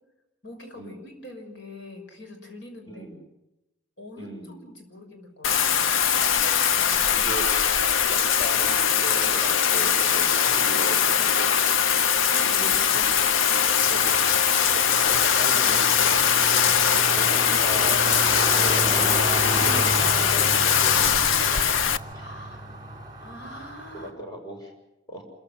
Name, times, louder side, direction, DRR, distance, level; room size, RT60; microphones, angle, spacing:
voice 1, 0.4-3.1 4.0-5.8 12.3-12.9 22.1-22.7 23.2-24.1, left 1 dB, 70° left, 4 dB, 6.2 m, -44 dB
voice 2, 2.9-3.2 4.2-4.6 7.1-7.5 8.0-11.8 12.6-13.2 13.8-14.0 14.7-16.6 17.1-18.0 18.5-18.8 19.4-21.7 22.1-22.2 23.9-24.7 25.1-25.2, right 1 dB, 20° left, 1 dB, 6.3 m, -38 dB
Bathtub (filling or washing), 5.4-22.0, left 7 dB, 90° left, 0.8 m, -21 dB
sound 1, 13.8-24.1, right 1 dB, 20° right, 3.7 m, -32 dB
27.0 x 15.0 x 9.2 m, 0.96 s
head